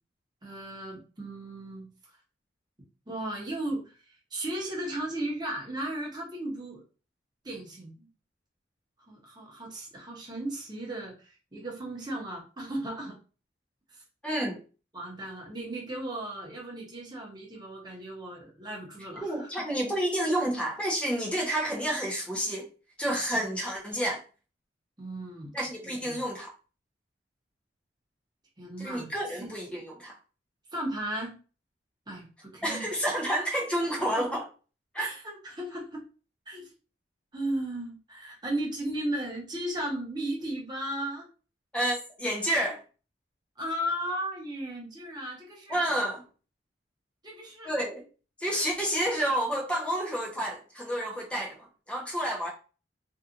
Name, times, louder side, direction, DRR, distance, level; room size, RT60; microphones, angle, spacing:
voice 1, 0.4-1.9 3.1-6.8 7.4-8.1 9.1-13.2 13.9-14.0 14.9-19.5 23.3-23.4 25.0-25.5 25.8-26.2 28.6-29.1 29.4-29.5 30.7-31.4 32.1-32.9 33.8-33.9 35.0-36.0 36.5-36.7 37.3-41.3 43.6-45.8 47.2-47.7, right 1 dB, 20° right, 0.9 m, -36 dB
voice 2, 14.2-14.6 19.2-22.7 23.0-24.2 25.5-26.5 28.8-30.1 32.6-34.4 34.9-35.1 41.7-42.8 45.7-46.2 47.6-48.0 48.4-52.5, right 1 dB, 5° left, 0.7 m, -30 dB
2.7 x 2.4 x 2.4 m
head